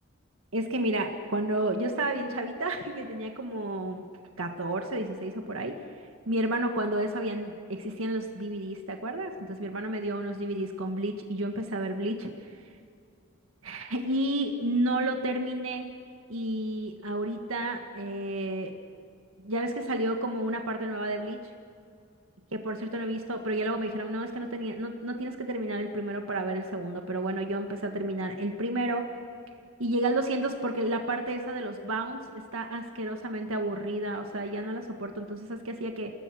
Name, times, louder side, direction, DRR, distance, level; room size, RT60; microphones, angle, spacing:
voice 1, 0.5-4.0 4.4-5.8 6.2-12.3 13.6-15.9 16.3-18.7 19.4-21.4 22.5-29.0 29.8-36.1, right 1 dB, 80° right, 4 dB, 1.7 m, -31 dB
29.0 x 19.5 x 6.3 m, 2.4 s
head